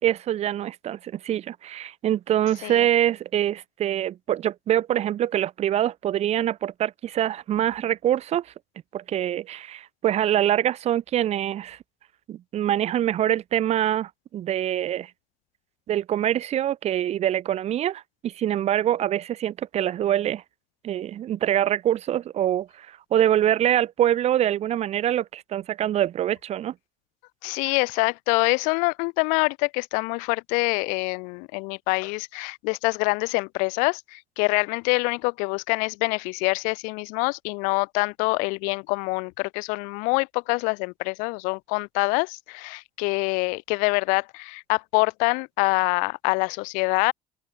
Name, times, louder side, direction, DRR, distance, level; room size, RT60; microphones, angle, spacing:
voice 1, 0.0-8.5 8.9-11.8 12.3-15.1 15.9-20.4 20.8-26.7, right 11 dB, 55° right, 3.8 m, -24 dB
voice 2, 27.4-47.1, left 32 dB, 85° left, 1.5 m, -25 dB
open air
supercardioid pair, 90°, 13 cm